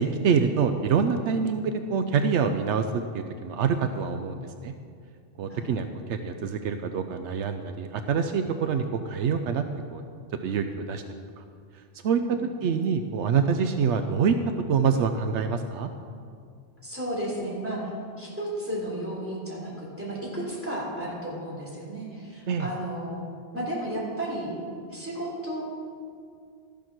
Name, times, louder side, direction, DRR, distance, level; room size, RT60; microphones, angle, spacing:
voice 1, 0.0-4.7 5.4-9.6 9.9-10.0 10.4-11.0 11.4-11.5 11.7-14.4 14.7-15.9 22.5-22.7, right 6 dB, 80° right, 7 dB, 0.9 m, -26 dB
voice 2, 16.8-17.8 18.2-23.2 23.5-24.5 24.9-25.6, right 1 dB, 10° right, -6 dB, 3.1 m, -33 dB
13.0 x 7.1 x 6.0 m, 2.2 s
omnidirectional pair, 1.2 m